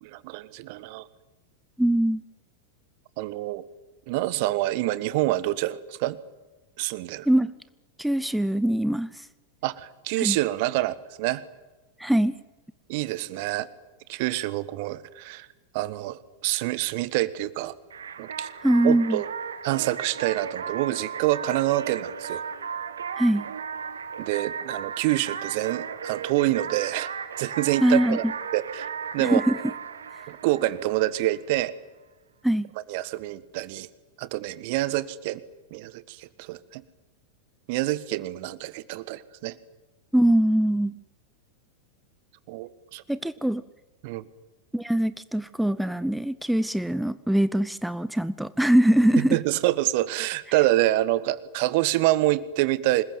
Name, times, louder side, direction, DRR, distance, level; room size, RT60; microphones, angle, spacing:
voice 1, 0.0-1.1 3.2-3.7 4.1-6.2 6.8-7.3 9.6-11.4 12.9-13.7 14.1-15.5 15.7-17.7 18.2-18.5 18.8-19.3 19.6-22.4 24.2-27.1 27.4-28.2 28.5-29.4 30.3-31.7 32.9-33.9 34.2-35.4 35.7-36.8 37.7-39.6 42.5-43.0 44.0-44.3 49.2-53.0, right 16 dB, 50° right, 18 dB, 1.4 m, -27 dB
voice 2, 1.8-2.2 7.3-7.5 8.0-9.3 10.2-10.4 12.0-12.4 18.6-19.2 23.1-23.4 27.8-28.2 29.2-29.6 32.4-32.7 40.1-41.0 43.1-43.6 44.7-49.4, right 1 dB, ahead, 15 dB, 0.8 m, -22 dB
sound 1, 17.9-31.4, right 7 dB, 70° right, 1.6 m, -35 dB
26.5 x 21.0 x 9.3 m, 1.1 s
figure-of-eight pair, 90°, 0 cm